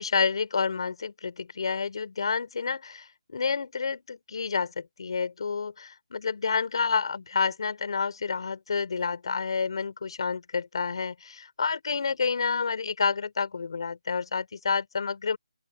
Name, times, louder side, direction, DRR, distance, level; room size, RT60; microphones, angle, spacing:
voice 1, 0.0-15.4, left 5 dB, 55° left, 4.7 m, -29 dB
open air
hypercardioid pair, 165°, 3 cm